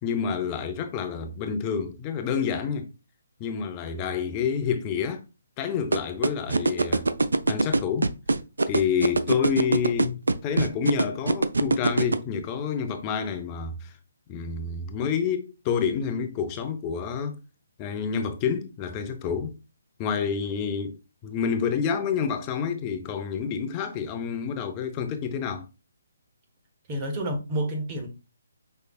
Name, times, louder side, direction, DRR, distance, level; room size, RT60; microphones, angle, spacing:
voice 1, 0.0-2.9 3.4-5.2 5.6-7.1 7.5-8.1 8.7-13.9 14.3-17.4 17.8-19.5 20.0-21.0 21.2-25.7, left 7 dB, 25° left, 0.7 m, -28 dB
sound 1, 5.9-12.2, right 3 dB, 80° right, 0.4 m, -21 dB
voice 2, 26.9-28.1, right 1 dB, 30° right, 1.3 m, -29 dB
5.5 x 3.2 x 2.3 m
figure-of-eight pair, 145°, 0 cm